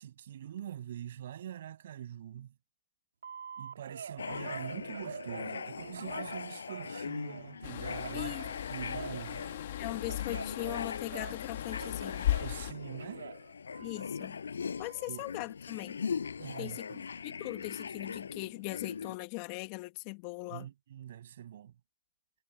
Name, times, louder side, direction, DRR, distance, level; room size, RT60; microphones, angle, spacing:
voice 1, 0.0-2.5 3.6-8.4 8.7-9.5 12.4-13.3 15.1-15.2 16.4-17.0 20.5-21.7, right 11 dB, 60° right, 7.3 m, -44 dB
Telephone, 3.2-7.5 8.0-11.5 11.7-14.2 14.7-15.2, right 6 dB, 85° right, 2.9 m, -46 dB
sound 1, 4.2-19.2, left 6 dB, 85° left, 5.5 m, -41 dB
sound 2, 7.6-12.7, left 13 dB, 55° left, 1.5 m, -37 dB
voice 2, 8.1-8.5 9.8-12.3 13.8-14.4 14.8-16.0 16.6-20.7, left 27 dB, 40° left, 1.8 m, -40 dB
hypercardioid pair, 135°, 0 cm